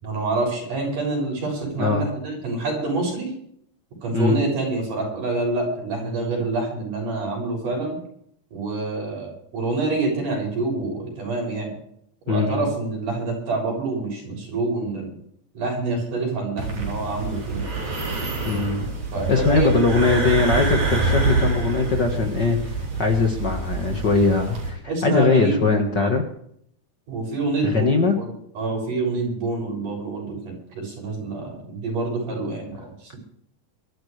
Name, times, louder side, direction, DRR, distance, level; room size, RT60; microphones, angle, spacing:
voice 1, 0.0-3.3 4.0-8.0 8.5-11.8 12.3-15.1 15.5-17.7 19.1-20.1 24.9-26.1 27.1-33.2, right 3 dB, 85° right, 0 dB, 8.3 m, -27 dB
voice 2, 12.3-12.7 18.5-18.9 19.3-26.2 27.6-28.2, left 4 dB, 40° left, 3 dB, 1.8 m, -21 dB
sound 1, 16.6-24.7, right 3 dB, 65° right, 5.4 m, -26 dB
23.5 x 13.0 x 3.4 m, 0.68 s
omnidirectional pair, 3.6 m